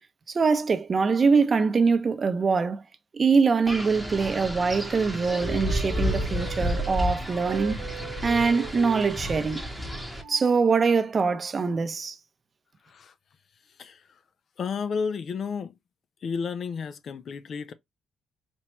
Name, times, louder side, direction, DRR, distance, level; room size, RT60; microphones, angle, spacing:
voice 1, 0.3-2.8 3.1-7.8 8.2-9.7 10.3-12.2, right 5 dB, 40° right, 0.6 m, -23 dB
Wind, 3.7-10.2, left 1 dB, ahead, 0.9 m, -31 dB
Wind instrument woodwind instrument, 3.7-7.0 7.3-11.1, right 11 dB, 90° right, 0.9 m, -40 dB
voice 2, 14.6-15.7 16.2-17.7, left 5 dB, 55° left, 0.4 m, -32 dB
4.4 x 2.2 x 3.0 m
cardioid pair, 90°, 0 cm